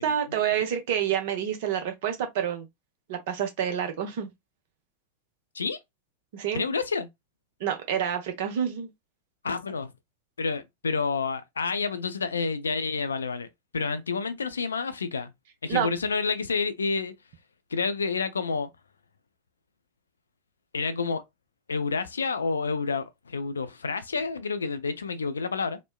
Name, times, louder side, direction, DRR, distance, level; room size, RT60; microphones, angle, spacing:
voice 1, 0.0-2.7 3.1-4.3 6.3-6.6 7.6-8.9 15.7-15.9, right 9 dB, 50° right, 0.7 m, -28 dB
voice 2, 6.5-7.1 9.4-9.9 10.4-13.5 13.7-15.3 15.6-17.1 17.7-18.7 20.7-21.2 21.7-25.8, left 4 dB, 70° left, 0.4 m, -29 dB
3.0 x 2.1 x 2.2 m
figure-of-eight pair, 90°, 0 cm